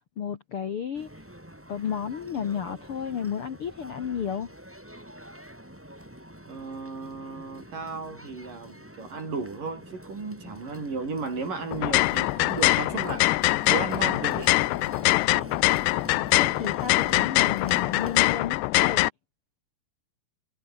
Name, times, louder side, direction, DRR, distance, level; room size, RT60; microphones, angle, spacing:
voice 1, 0.2-1.3 1.7-4.5 16.4-19.1, left 8 dB, 60° left, 1.4 m, -32 dB
sound 1, 0.9-18.2, equal, 5° right, 4.2 m, -45 dB
voice 2, 6.5-13.3 13.7-14.5, right 4 dB, 50° right, 9.2 m, -34 dB
sound 2, 11.7-19.1, left 19 dB, 85° left, 2.9 m, -23 dB
omnidirectional pair, 4.8 m